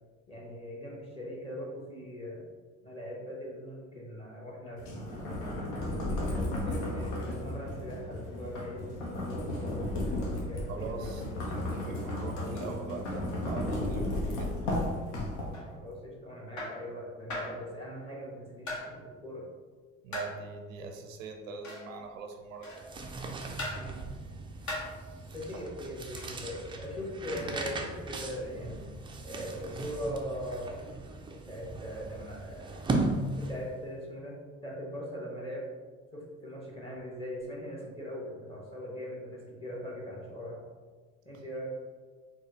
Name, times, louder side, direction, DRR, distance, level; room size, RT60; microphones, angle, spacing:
voice 1, 0.3-2.4 2.8-5.3 5.9-11.1 15.7-19.5 23.7-24.1 25.3-28.8 29.2-30.8 31.5-32.8 33.3-35.7 36.1-40.6 41.2-41.7, equal, 15° left, -4 dB, 1.3 m, -41 dB
sound 1, 4.8-15.8, left 1 dB, 70° left, 0.9 m, -34 dB
voice 2, 10.7-14.5 20.0-22.8 25.0-25.2, right 4 dB, 85° right, 4 dB, 0.5 m, -42 dB
sound 2, 15.5-15.7 16.6-16.8 17.3-17.6 18.7-18.9 20.1-20.4 21.6-21.9 22.6-22.9 23.6-23.9 24.7-25.0 26.2-26.4, left 1 dB, 50° left, 1.3 m, -38 dB
sound 3, 22.6-33.8, right 2 dB, 15° right, 0.4 m, -37 dB
4.2 x 2.3 x 3.0 m, 1.4 s
hypercardioid pair, 65°, 39 cm